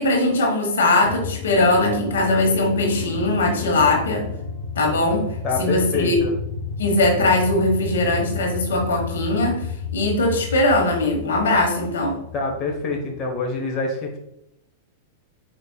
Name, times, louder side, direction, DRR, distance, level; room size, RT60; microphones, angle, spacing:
voice 1, 0.0-4.3 4.7-5.3 5.6-6.2 6.8-12.2, left 2 dB, 75° left, 2 dB, 1.2 m, -20 dB
sound 1, 1.0-13.2, left 5 dB, 55° left, 1.3 m, -31 dB
voice 2, 5.4-6.4 12.3-14.2, left 3 dB, 35° left, 1 dB, 1.0 m, -26 dB
4.8 x 4.3 x 2.3 m, 0.79 s
hypercardioid pair, 105°, 0 cm